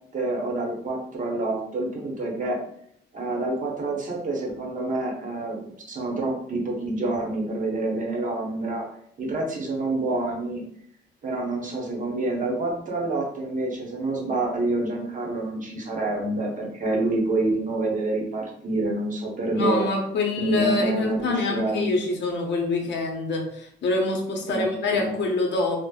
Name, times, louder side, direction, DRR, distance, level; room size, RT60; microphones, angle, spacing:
voice 1, 0.1-2.6 3.1-8.8 9.2-10.6 11.2-19.9 20.4-21.9 24.5-24.7 24.9-25.1, right 2 dB, 40° right, -1 dB, 0.8 m, -27 dB
voice 2, 19.5-25.7, left 3 dB, 65° left, 2 dB, 0.6 m, -25 dB
3.1 x 2.0 x 2.3 m, 0.68 s
cardioid pair, 90°, 20 cm